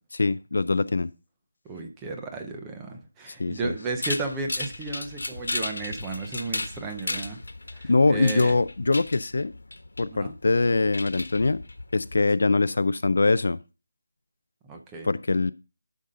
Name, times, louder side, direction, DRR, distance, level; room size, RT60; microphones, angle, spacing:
voice 1, 0.2-1.1 3.4-3.7 7.8-9.5 10.0-11.6 11.9-13.6 15.0-15.5, left 3 dB, 45° left, 15 dB, 0.4 m, -23 dB
voice 2, 1.6-7.4 7.7-8.6 10.1-10.3 14.7-15.1, right 3 dB, 5° right, 3 dB, 0.5 m, -34 dB
sound 1, 4.0-12.2, left 2 dB, 75° left, 1.3 m, -35 dB
11.5 x 5.3 x 3.7 m, 0.31 s
figure-of-eight pair, 180°, 0 cm